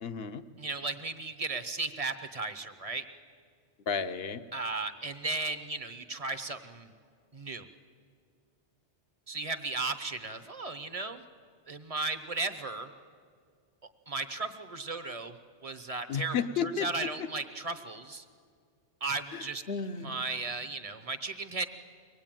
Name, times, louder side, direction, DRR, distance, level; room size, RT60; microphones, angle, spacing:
voice 1, 0.0-0.4 3.9-4.4 16.1-17.3 19.3-20.2, left 6 dB, 65° left, 10 dB, 1.1 m, -33 dB
voice 2, 0.6-3.0 4.5-6.9 7.3-7.7 9.3-11.2 11.7-12.9 14.1-15.4 15.6-16.4 16.6-18.2 19.0-19.6 20.0-21.7, right 3 dB, 35° right, 10 dB, 1.0 m, -35 dB
23.5 x 19.0 x 9.0 m, 2.1 s
omnidirectional pair, 1.1 m